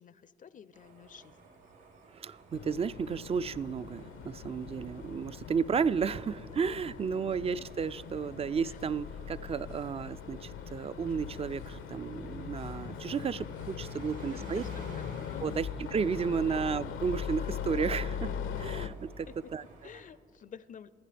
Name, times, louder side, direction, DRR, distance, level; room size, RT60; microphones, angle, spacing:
voice 1, 0.0-1.3 8.6-8.8 14.3-14.7 15.0-15.6 16.5-16.6 19.3-19.4 19.8-20.9, left 7 dB, 40° left, 16 dB, 0.5 m, -50 dB
sound 1, 0.7-20.0, right 4 dB, 80° right, 3.5 m, -58 dB
voice 2, 2.1-14.6 15.4-18.3 18.6-19.6, right 6 dB, 30° right, 17 dB, 0.3 m, -33 dB
sound 2, 2.5-18.9, left 8 dB, 80° left, 0.7 m, -40 dB
sound 3, 11.8-18.4 19.3-19.4, right 5 dB, 60° right, 1.8 m, -53 dB
28.0 x 10.0 x 3.4 m, 2.4 s
cardioid pair, 90°, 20 cm